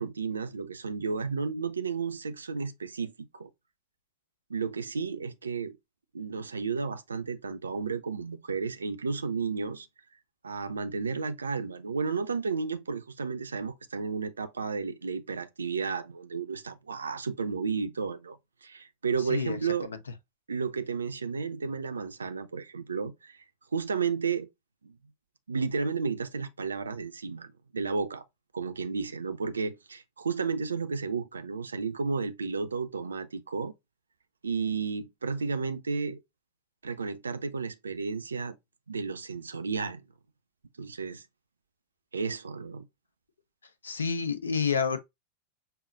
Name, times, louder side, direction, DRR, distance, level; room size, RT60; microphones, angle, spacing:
voice 1, 0.0-3.5 4.5-5.8 6.1-9.9 10.4-19.9 20.5-23.4 23.7-24.5 24.8-25.0 25.5-28.2 28.5-33.7 34.4-36.2 36.8-38.6 38.9-40.0 40.8-41.2 42.1-42.9, right 5 dB, 75° right, 0.4 m, -32 dB
voice 2, 19.3-20.0 43.8-45.0, left 6 dB, 70° left, 0.6 m, -29 dB
5.5 x 2.1 x 3.8 m
figure-of-eight pair, 90°, 0 cm